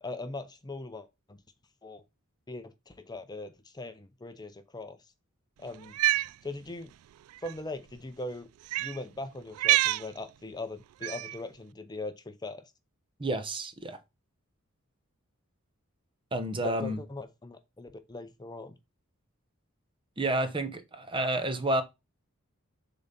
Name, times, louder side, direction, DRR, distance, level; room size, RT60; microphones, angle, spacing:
voice 1, 0.0-1.4 1.8-2.0 2.5-5.0 5.6-6.0 6.4-6.9 7.4-8.5 8.8-12.7 16.6-18.8, left 2 dB, 20° left, 0.6 m, -40 dB
Cat, 5.8-6.3 7.4-7.5 8.7-9.0 9.5-10.1 11.0-11.4, right 15 dB, 85° right, 0.3 m, -26 dB
voice 2, 13.2-14.0 16.3-17.0 20.2-21.8, right 1 dB, 25° right, 0.9 m, -30 dB
7.0 x 3.9 x 5.8 m
head